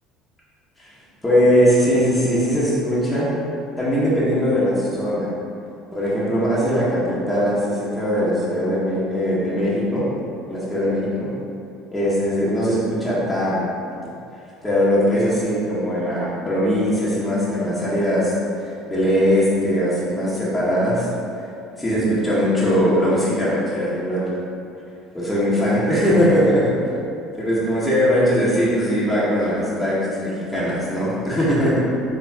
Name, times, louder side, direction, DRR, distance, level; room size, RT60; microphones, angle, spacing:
voice 1, 1.2-3.3 3.8-5.3 5.9-10.0 10.5-11.3 11.9-13.7 14.6-18.3 18.9-21.1 21.8-24.3 25.1-26.7 27.3-31.8, equal, 10° left, -10 dB, 1.3 m, -20 dB
4.3 x 3.3 x 2.9 m, 2.6 s
hypercardioid pair, 70°, 0 cm